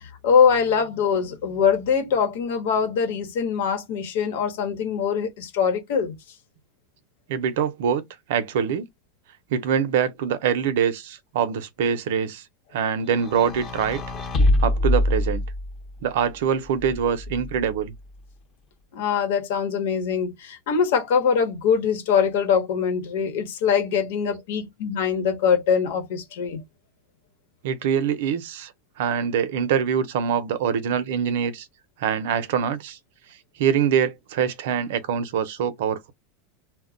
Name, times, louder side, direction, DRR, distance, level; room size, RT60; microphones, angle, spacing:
voice 1, 0.0-6.2 18.9-26.6, left 6 dB, 75° left, 1.0 m, -23 dB
voice 2, 7.3-8.0 8.3-8.8 9.5-12.4 12.7-14.0 14.6-15.4 16.0-17.9 27.6-28.7 29.0-31.7 32.0-33.0 33.6-36.1, right 8 dB, 75° right, 0.6 m, -24 dB
sound 1, 13.2-15.9 16.8-17.7, left 1 dB, 30° left, 0.8 m, -24 dB
2.2 x 2.1 x 3.8 m
supercardioid pair, 145°, 0 cm